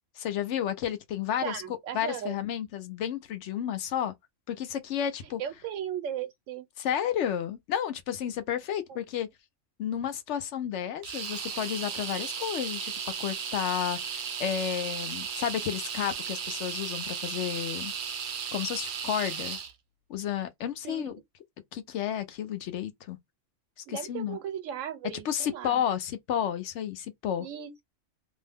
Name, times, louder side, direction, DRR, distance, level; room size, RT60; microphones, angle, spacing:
voice 1, 0.2-4.1 4.5-5.4 6.8-9.3 9.8-12.9 13.2-17.9 18.5-19.6 20.1-21.1 21.7-23.2 23.9-24.4 25.2-27.5, left 9 dB, 70° left, 0.8 m, -32 dB
voice 2, 1.4-2.4 5.4-6.6 20.8-21.1 23.9-25.8 27.4-27.8, right 9 dB, 80° right, 1.0 m, -36 dB
sound 1, 11.0-19.7, right 7 dB, 60° right, 0.5 m, -35 dB
2.7 x 2.0 x 3.4 m
omnidirectional pair, 1.3 m